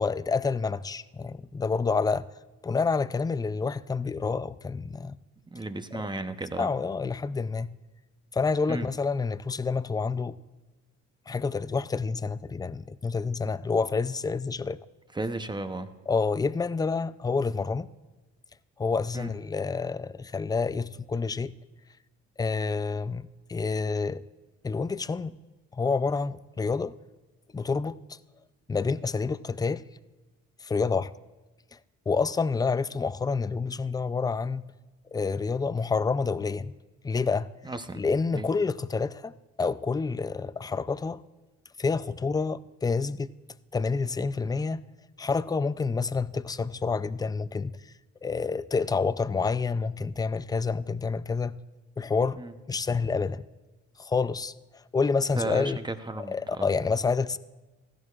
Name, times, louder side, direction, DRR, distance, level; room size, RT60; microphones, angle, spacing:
voice 1, 0.0-2.3 2.6-5.2 5.9-6.0 6.6-7.7 8.3-10.4 11.3-14.8 16.1-17.9 18.8-21.5 22.4-24.2 24.6-25.3 25.7-26.9 27.5-28.2 28.7-29.8 30.6-31.1 32.1-34.6 35.1-36.7 37.0-37.5 38.0-39.3 39.6-41.2 41.8-43.3 43.7-44.8 45.2-47.7 48.2-51.6 52.0-52.4 52.7-53.4 54.0-54.5 54.9-55.8 56.3-57.4, left 4 dB, 15° left, 0.3 m, -28 dB
voice 2, 5.5-6.7 8.7-8.9 15.2-15.9 19.1-19.3 37.6-38.0 38.3-38.5 52.4-52.5 55.4-56.7, right 2 dB, 15° right, 0.7 m, -34 dB
16.0 x 13.5 x 2.4 m
cardioid pair, 90°, 30 cm